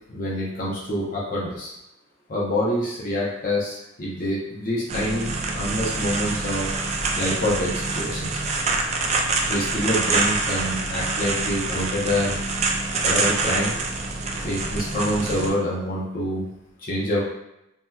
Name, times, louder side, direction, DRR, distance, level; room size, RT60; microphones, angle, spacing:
voice 1, 0.1-1.7 2.3-6.7 7.2-8.3 9.5-12.4 13.0-13.7 14.4-16.5 16.8-17.2, left 1 dB, 40° left, -6 dB, 0.6 m, -26 dB
sound 1, 4.9-15.5, right 3 dB, 30° right, 0.4 m, -26 dB
3.3 x 2.7 x 2.2 m, 0.86 s
head